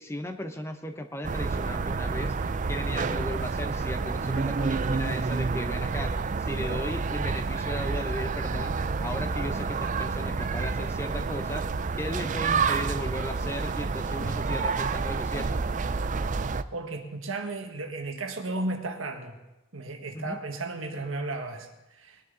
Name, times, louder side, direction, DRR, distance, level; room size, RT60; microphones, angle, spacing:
voice 1, 0.0-8.7 9.0-11.7 12.0-15.7 20.1-20.4, left 1 dB, 15° left, 6 dB, 0.9 m, -36 dB
sound 1, 1.2-16.6, right 4 dB, 40° right, 0.4 m, -29 dB
voice 2, 16.7-19.4 19.7-22.2, right 2 dB, 80° right, 5 dB, 1.6 m, -34 dB
20.5 x 10.5 x 4.0 m, 0.99 s
head